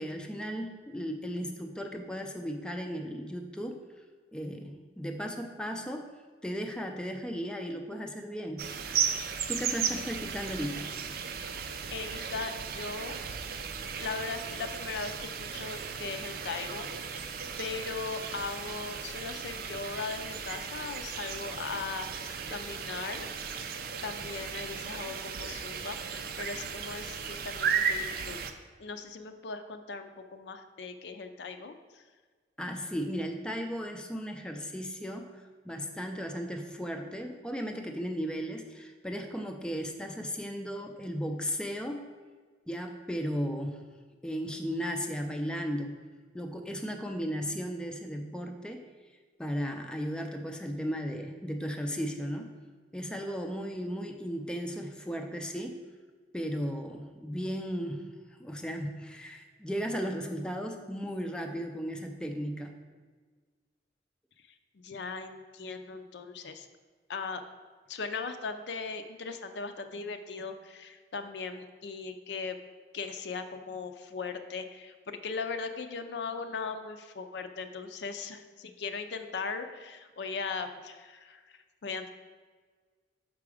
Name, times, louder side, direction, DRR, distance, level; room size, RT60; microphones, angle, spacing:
voice 1, 0.0-3.8 4.3-6.1 6.4-8.7 9.5-11.0 32.6-42.1 42.7-43.8 44.2-46.0 46.3-48.9 49.4-52.5 52.9-55.8 56.3-58.1 58.4-62.7, equal, 5° left, 3 dB, 0.4 m, -35 dB
sound 1, 8.6-28.5, right 6 dB, 55° right, 0.4 m, -35 dB
voice 2, 11.9-13.2 14.0-17.2 17.6-23.3 24.0-28.4 28.8-32.0 64.7-66.7 67.1-67.4 67.9-72.6 72.9-82.1, left 4 dB, 65° left, 7 dB, 0.5 m, -38 dB
6.0 x 4.7 x 4.8 m, 1.5 s
head